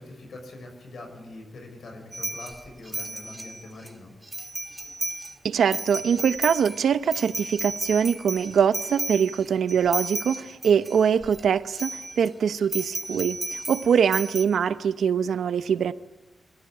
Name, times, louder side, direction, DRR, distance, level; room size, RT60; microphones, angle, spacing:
voice 1, 0.0-4.1, left 2 dB, 75° left, 6.6 m, -43 dB
sound 1, 2.1-3.9 4.3-5.3 5.6-11.4 11.7-12.3 12.7-14.4, right 2 dB, 15° right, 1.9 m, -34 dB
voice 2, 5.4-15.9, right 7 dB, 90° right, 0.8 m, -23 dB
25.0 x 14.0 x 9.9 m
wide cardioid pair, 115°, 0 cm